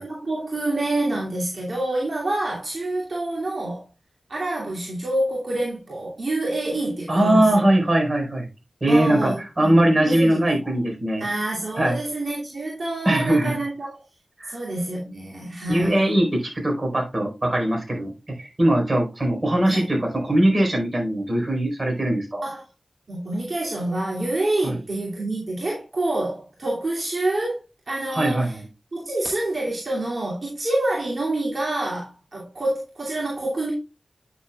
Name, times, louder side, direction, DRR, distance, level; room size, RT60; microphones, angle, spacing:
voice 1, 0.0-3.9 4.3-7.6 8.9-10.7 11.2-14.0 14.4-16.1 19.6-19.9 22.4-22.6 23.1-27.6 27.9-28.6 28.9-33.7, right 1 dB, 65° right, 2.6 m, -27 dB
voice 2, 7.1-8.5 8.8-11.2 11.8-12.0 13.0-13.6 14.4-14.5 15.7-18.1 18.4-22.4 24.6-24.8 28.1-28.6, right 1 dB, 40° right, 4.5 m, -21 dB
9.4 x 7.1 x 2.4 m
wide cardioid pair, 65°, 0 cm